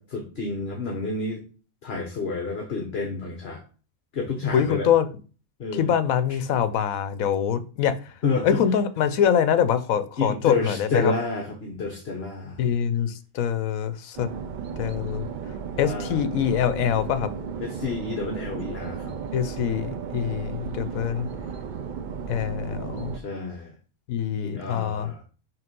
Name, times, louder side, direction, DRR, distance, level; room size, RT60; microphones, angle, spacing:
voice 1, 0.0-1.4 1.8-3.6 4.1-4.9 5.6-5.9 8.2-8.6 10.2-12.6 15.7-16.2 17.6-19.1 23.1-23.7 24.4-25.2, left 4 dB, 50° left, 1 dB, 1.2 m, -29 dB
voice 2, 4.5-5.1 5.7-8.1 8.4-11.1 12.6-14.3 14.8-15.3 15.8-17.3 19.3-21.3 22.3-23.2 24.1-25.1, left 8 dB, 75° left, 13 dB, 1.1 m, -24 dB
sound 1, 14.2-23.2, right 6 dB, 70° right, 0.4 m, -34 dB
5.9 x 3.2 x 5.2 m, 0.36 s
omnidirectional pair, 1.5 m